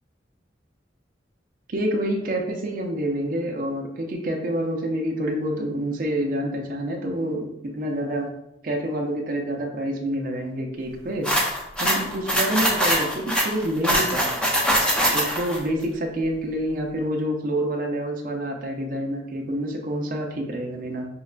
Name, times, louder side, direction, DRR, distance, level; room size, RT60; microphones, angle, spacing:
voice 1, 1.7-8.3 8.6-11.3 11.8-14.4 15.1-21.1, right 1 dB, 50° right, 1 dB, 0.5 m, -27 dB
sound 1, 11.2-15.6, equal, 5° left, 0.5 m, -22 dB
5.4 x 2.1 x 2.4 m, 0.84 s
head